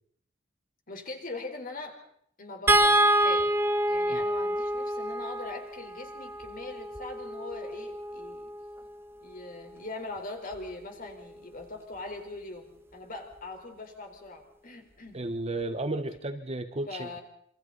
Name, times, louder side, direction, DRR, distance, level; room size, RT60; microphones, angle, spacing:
voice 1, 0.9-2.0 2.4-3.5 3.9-8.5 9.2-15.2 16.9-17.2, left 2 dB, 45° left, 4 dB, 4.3 m, -41 dB
sound 1, 2.7-9.0 10.5-10.7 11.1-11.2, right 1 dB, 10° right, 1.5 m, -27 dB
voice 2, 15.1-17.1, right 2 dB, 30° right, 8 dB, 1.3 m, -33 dB
27.5 x 25.0 x 4.1 m, 0.67 s
head